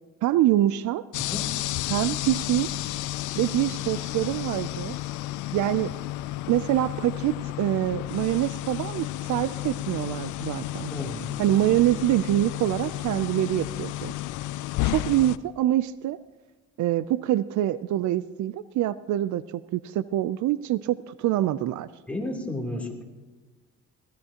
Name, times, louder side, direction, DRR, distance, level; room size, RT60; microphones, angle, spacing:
voice 1, 0.2-1.0 1.9-2.9 3.4-4.9 5.5-5.9 6.5-10.9 11.4-14.1 14.8-16.2 16.8-19.4 19.7-21.9, right 13 dB, 75° right, 16 dB, 0.5 m, -25 dB
sound 1, 1.1-15.4, left 15 dB, 85° left, 0.5 m, -32 dB
voice 2, 10.9-11.3 22.1-23.0, left 1 dB, 5° left, -1 dB, 3.1 m, -32 dB
20.5 x 15.5 x 2.9 m, 1.2 s
cardioid pair, 90°, 29 cm